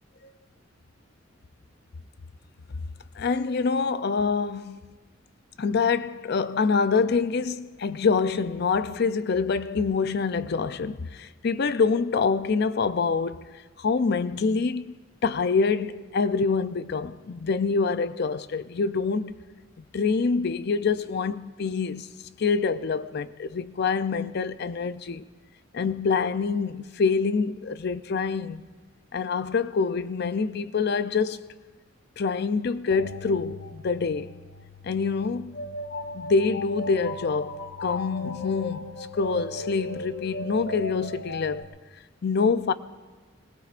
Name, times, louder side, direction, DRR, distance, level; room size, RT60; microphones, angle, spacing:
voice 1, 3.2-4.8 5.6-13.4 13.8-14.9 15.2-19.4 19.9-22.1 22.4-25.2 25.7-28.6 29.1-31.5 32.2-34.3 34.8-35.6 36.1-41.7 42.2-42.7, left 5 dB, 60° left, 0.5 m, -26 dB
sound 1, 32.9-41.6, left 1 dB, 85° left, 0.9 m, -37 dB
25.5 x 20.0 x 2.5 m
head